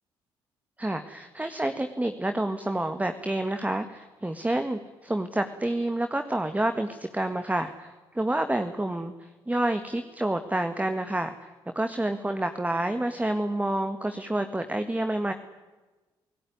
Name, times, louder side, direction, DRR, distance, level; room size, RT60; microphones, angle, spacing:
voice 1, 0.8-11.5 11.7-15.3, right 1 dB, 10° right, 8 dB, 1.9 m, -28 dB
28.5 x 17.5 x 9.6 m, 1.2 s
hypercardioid pair, 45°, 12 cm